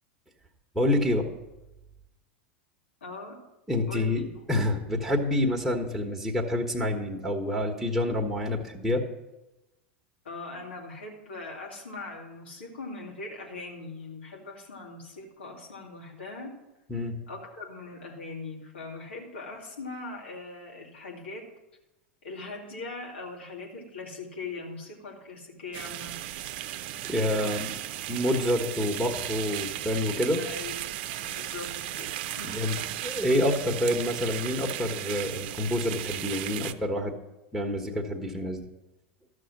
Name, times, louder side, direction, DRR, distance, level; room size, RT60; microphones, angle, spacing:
voice 1, 0.7-1.3 3.7-4.2 4.5-9.0 16.9-17.1 27.0-27.7 28.1-30.4 32.6-32.7 33.0-37.1 37.5-38.6, left 1 dB, ahead, -1 dB, 1.3 m, -27 dB
voice 2, 3.0-3.4 3.9-4.3 10.2-16.6 17.3-21.5 22.2-26.3 27.4-27.5 30.4-32.9, left 3 dB, 80° left, -1 dB, 2.3 m, -41 dB
sound 1, 25.7-36.7, right 13 dB, 60° right, 0.5 m, -36 dB
12.5 x 6.4 x 6.0 m, 0.98 s
hypercardioid pair, 90°, 6 cm